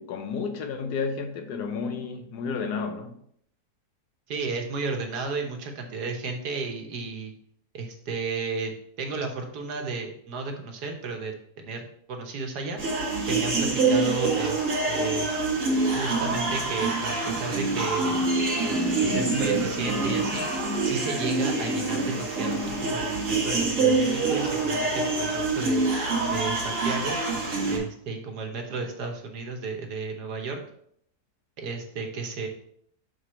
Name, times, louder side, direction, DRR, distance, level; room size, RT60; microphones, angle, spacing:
voice 1, 0.0-3.1, left 5 dB, 85° left, 1.3 m, -31 dB
voice 2, 4.3-7.3 7.7-8.7 9.0-11.8 12.1-12.8 13.2-15.3 15.9-18.3 19.0-20.6 20.8-25.8 26.3-27.2 27.7-30.6 31.6-32.5, right 4 dB, 85° right, 1.6 m, -33 dB
sound 1, 12.8-27.8, right 3 dB, 55° right, 2.0 m, -26 dB
6.7 x 3.8 x 4.2 m
omnidirectional pair, 1.7 m